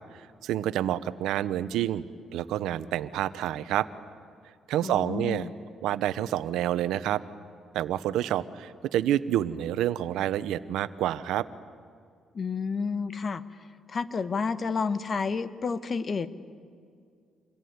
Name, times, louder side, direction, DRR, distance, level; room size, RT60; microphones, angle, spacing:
voice 1, 0.4-2.0 2.3-3.9 4.7-5.5 5.8-7.2 7.7-11.5, right 12 dB, 85° right, 15 dB, 0.9 m, -28 dB
voice 2, 4.8-5.5 12.3-13.4 13.9-16.3, left 5 dB, 40° left, 13 dB, 1.3 m, -30 dB
26.5 x 21.5 x 9.6 m, 2.2 s
cardioid pair, 90°, 0 cm